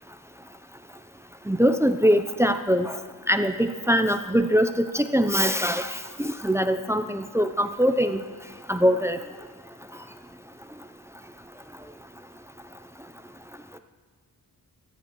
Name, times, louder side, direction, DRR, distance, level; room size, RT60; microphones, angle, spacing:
voice 1, 1.5-3.0 3.3-8.2 8.7-9.2, equal, 5° right, 9 dB, 0.6 m, -22 dB
23.5 x 9.1 x 3.1 m, 1.5 s
cardioid pair, 70°, 42 cm